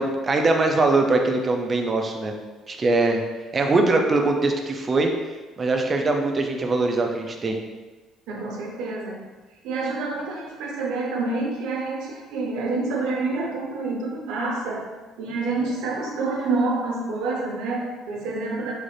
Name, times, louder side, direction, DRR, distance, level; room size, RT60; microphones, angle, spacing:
voice 1, 0.0-2.3 2.7-3.2 3.5-5.1 5.6-7.6, right 3 dB, 25° right, 3 dB, 0.4 m, -22 dB
voice 2, 8.3-9.2 9.6-14.8 15.2-18.7, right 3 dB, 85° right, -1 dB, 0.8 m, -27 dB
3.9 x 2.4 x 3.2 m, 1.2 s
cardioid pair, 160°, 0 cm